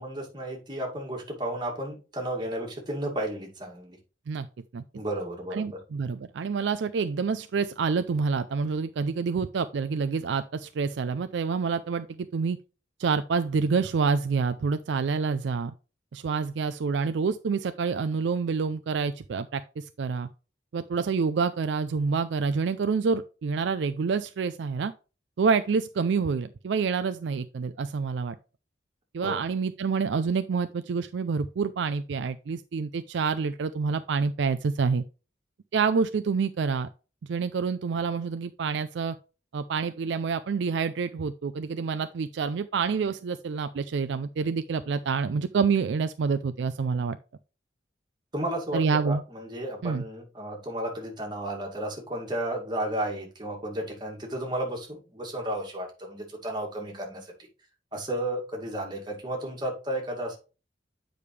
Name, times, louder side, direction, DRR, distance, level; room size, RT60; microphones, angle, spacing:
voice 1, 0.0-4.0 5.0-5.6 29.2-29.4 48.3-57.3 57.9-60.4, right 1 dB, 25° right, 2.2 m, -33 dB
voice 2, 5.5-12.6 13.0-15.7 16.1-20.3 20.7-24.9 25.4-28.4 29.1-35.0 35.7-36.9 37.3-39.2 39.5-47.2 48.7-49.2 49.8-50.0, right 5 dB, 75° right, 0.4 m, -27 dB
8.6 x 5.1 x 3.2 m
head